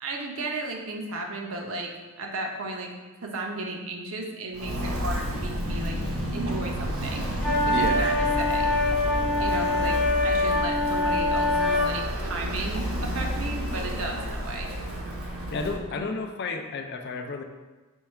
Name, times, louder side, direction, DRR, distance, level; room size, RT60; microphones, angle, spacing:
voice 1, 0.0-1.9 2.2-2.9 3.2-6.0 6.3-7.3 7.6-8.7 9.4-10.0 10.2-14.7 15.9-16.1, right 2 dB, 65° right, 1 dB, 0.6 m, -34 dB
Walk footsteps, 4.5-15.8, equal, 85° right, 1.0 m, -31 dB
sound 1, 7.4-11.9, left 2 dB, 5° left, 0.6 m, -24 dB
voice 2, 7.6-8.1 15.5-17.4, left 4 dB, 50° left, 5 dB, 0.4 m, -32 dB
4.5 x 2.3 x 4.3 m, 1.2 s
head